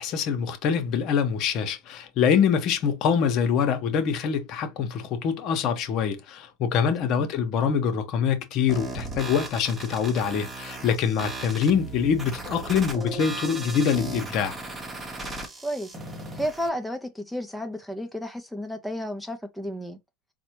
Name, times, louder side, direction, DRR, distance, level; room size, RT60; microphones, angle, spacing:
voice 1, 0.0-14.6, left 7 dB, 50° left, 0.8 m, -25 dB
sound 1, 8.7-16.7, right 3 dB, 20° right, 0.9 m, -37 dB
voice 2, 15.6-15.9 16.3-20.0, equal, ahead, 0.6 m, -32 dB
4.1 x 2.1 x 2.8 m
hypercardioid pair, 100°, 0 cm